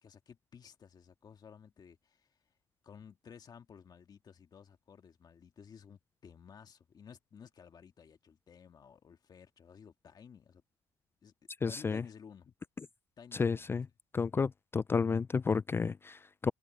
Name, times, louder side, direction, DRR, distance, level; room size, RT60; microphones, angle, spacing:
voice 1, 0.0-2.4 2.8-10.6 11.2-11.3 11.7-12.5 13.2-13.7, left 7 dB, 40° left, 1.8 m, -55 dB
voice 2, 11.6-12.0 13.3-13.9 14.1-16.5, left 5 dB, 20° left, 0.3 m, -31 dB
cardioid pair, 95°, 10 cm